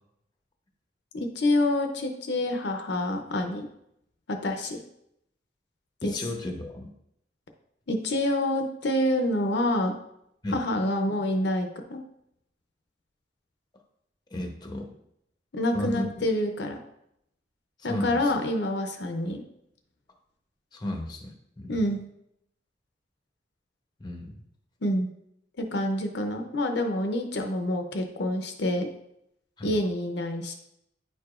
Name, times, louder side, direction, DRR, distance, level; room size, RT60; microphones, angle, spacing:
voice 1, 1.1-3.7 4.3-4.8 6.0-6.2 7.9-10.0 10.5-12.0 15.5-16.8 17.8-19.4 21.7-22.0 24.8-25.1 25.6-28.9 29.6-30.5, left 1 dB, 65° left, 4 dB, 0.7 m, -27 dB
voice 2, 6.0-6.9 10.4-10.6 14.3-14.9 15.7-16.1 17.9-18.3 20.7-21.7 24.0-24.3 29.6-29.8, left 1 dB, 25° left, 2 dB, 0.8 m, -33 dB
9.3 x 4.7 x 2.5 m, 0.77 s
head